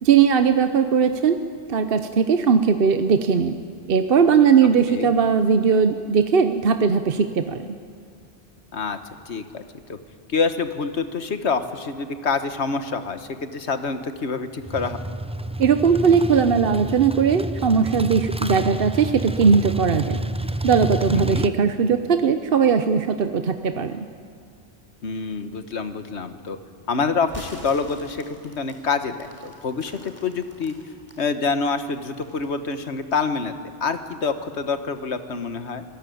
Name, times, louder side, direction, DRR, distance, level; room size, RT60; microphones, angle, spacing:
voice 1, 0.0-1.4 1.7-3.6 3.9-7.6 15.6-20.2 20.6-24.1, right 6 dB, 60° right, 8 dB, 1.0 m, -19 dB
voice 2, 9.2-9.6 9.9-10.0 10.3-15.0 21.1-21.5 25.0-26.6 26.9-30.7 31.2-33.5 33.8-35.8, left 4 dB, 85° left, 9 dB, 1.6 m, -26 dB
sound 1, 14.6-21.5, right 1 dB, 10° right, 0.4 m, -29 dB
sound 2, 27.3-31.2 31.7-32.9, left 1 dB, 30° left, 3.8 m, -44 dB
26.0 x 18.0 x 9.3 m, 2.2 s
omnidirectional pair, 1.1 m